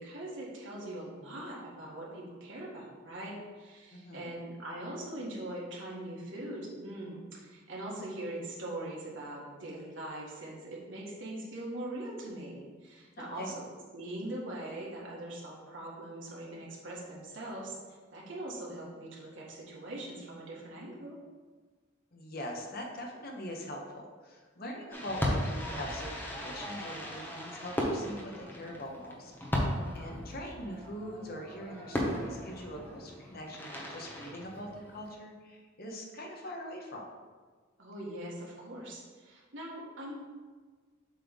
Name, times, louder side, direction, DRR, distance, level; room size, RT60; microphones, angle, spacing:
voice 1, 0.0-13.7 13.9-17.7 18.1-21.2 29.8-30.2 37.8-40.3, right 1 dB, 70° right, -4 dB, 1.8 m, -42 dB
voice 2, 3.9-4.3 13.2-13.5 22.1-37.1, equal, 50° left, 0 dB, 1.1 m, -42 dB
Fireworks, 24.9-35.1, equal, 10° left, 1.0 m, -36 dB
7.5 x 3.3 x 5.3 m, 1.4 s
head